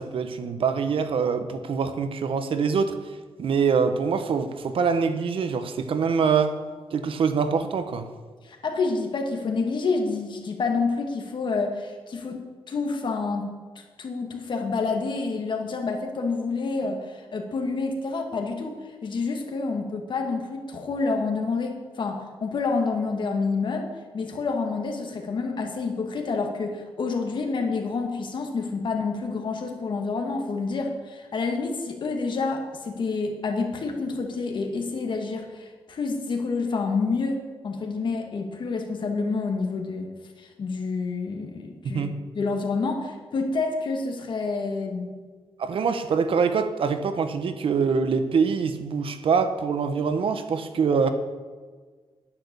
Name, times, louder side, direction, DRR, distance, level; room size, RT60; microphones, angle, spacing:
voice 1, 0.0-2.9 3.4-6.5 6.9-8.1 41.9-42.1 45.6-51.1, right 5 dB, 65° right, 9 dB, 1.1 m, -24 dB
voice 2, 8.4-13.5 14.0-18.8 19.0-23.9 24.1-40.1 40.4-42.0 42.4-45.2, left 4 dB, 55° left, 3 dB, 2.0 m, -28 dB
10.5 x 10.5 x 7.0 m, 1.4 s
wide cardioid pair, 140°, 10 cm